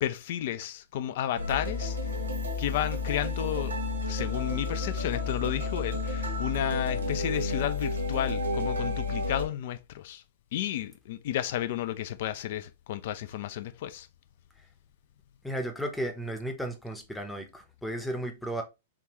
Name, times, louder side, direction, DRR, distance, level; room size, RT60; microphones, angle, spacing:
voice 1, 0.0-2.1 2.6-3.8 4.1-10.2 10.5-14.1, left 11 dB, 55° left, 0.4 m, -32 dB
sound 1, 1.4-9.5, left 3 dB, 80° right, 1.0 m, -31 dB
voice 2, 15.4-18.6, right 1 dB, 5° left, 0.8 m, -34 dB
3.6 x 2.3 x 3.0 m
figure-of-eight pair, 105°, 0 cm